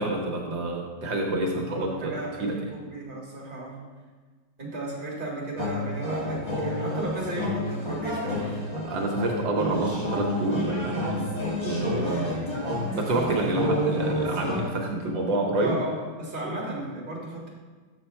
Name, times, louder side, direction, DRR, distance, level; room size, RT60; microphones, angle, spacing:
voice 1, 0.0-2.5 8.9-11.3 11.6-12.3 12.9-15.8, right 2 dB, 80° right, 1 dB, 1.7 m, -28 dB
voice 2, 1.5-3.8 4.6-8.7 12.0-12.3 12.6-12.9 15.6-17.5, right 1 dB, 25° right, -4 dB, 1.9 m, -35 dB
sound 1, 5.6-14.6, left 1 dB, 15° left, 1.6 m, -30 dB
7.1 x 6.9 x 4.3 m, 1.4 s
omnidirectional pair, 2.0 m